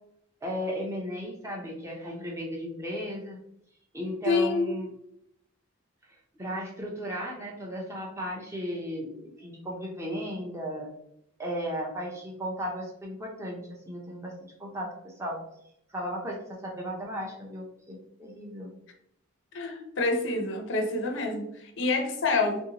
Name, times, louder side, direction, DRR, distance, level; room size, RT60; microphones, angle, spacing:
voice 1, 0.4-3.4 3.9-4.9 6.4-10.9 11.4-14.3 14.6-15.4 15.9-18.7, equal, 15° right, -2 dB, 0.5 m, -35 dB
voice 2, 4.3-4.8 19.5-22.6, left 3 dB, 55° left, 3 dB, 0.5 m, -27 dB
3.0 x 2.6 x 2.8 m, 0.77 s
head